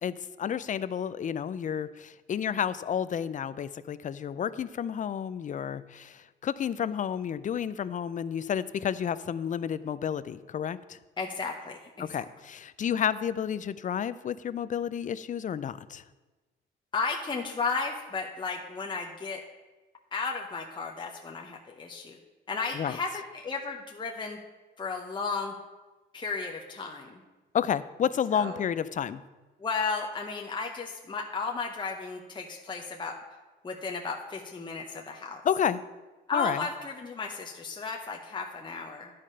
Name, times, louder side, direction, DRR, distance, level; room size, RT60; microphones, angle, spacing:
voice 1, 0.0-11.0 12.0-16.0 22.7-23.0 27.5-29.2 35.4-35.8 36.3-36.6, left 8 dB, 40° left, 16 dB, 0.4 m, -31 dB
voice 2, 11.2-12.2 16.9-19.4 20.1-22.2 22.5-24.4 24.8-25.6 26.1-27.2 28.3-28.6 29.6-33.2 33.6-35.4 36.3-39.1, left 4 dB, 25° left, 1 dB, 0.9 m, -34 dB
10.5 x 5.0 x 5.5 m, 1.2 s
cardioid pair, 90°, 20 cm